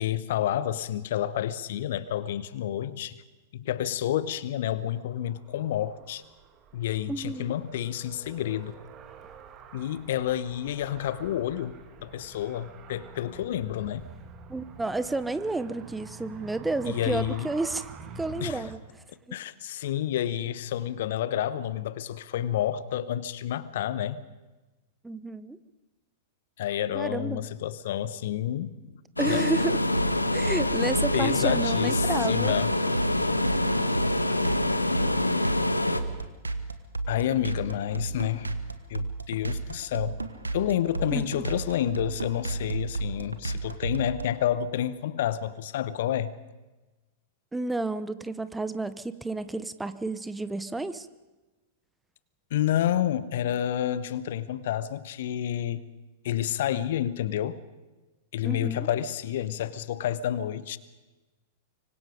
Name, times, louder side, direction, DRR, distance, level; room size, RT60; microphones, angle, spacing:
voice 1, 0.0-3.2 3.5-6.2 6.7-8.8 9.7-14.1 16.9-17.5 18.4-18.6 19.3-24.2 26.6-28.8 29.2-29.5 31.1-32.7 37.1-38.5 38.9-40.2 40.5-46.3 52.5-55.9 56.2-57.6 58.3-60.8, left 11 dB, 55° left, 1.0 m, -29 dB
Car, 4.8-18.8, right 6 dB, 30° right, 2.2 m, -47 dB
voice 2, 7.1-7.5 14.5-17.9 18.2-18.8 19.3-19.4 25.0-25.6 26.9-27.5 29.2-29.8 30.3-32.5 41.1-41.4 47.5-51.1 58.4-58.9, right 2 dB, 10° right, 0.9 m, -31 dB
sound 1, 29.2-36.0, left 1 dB, 90° left, 1.3 m, -26 dB
sound 2, 29.9-44.2, right 3 dB, 85° right, 1.4 m, -32 dB
25.0 x 25.0 x 5.1 m
figure-of-eight pair, 95°, 0 cm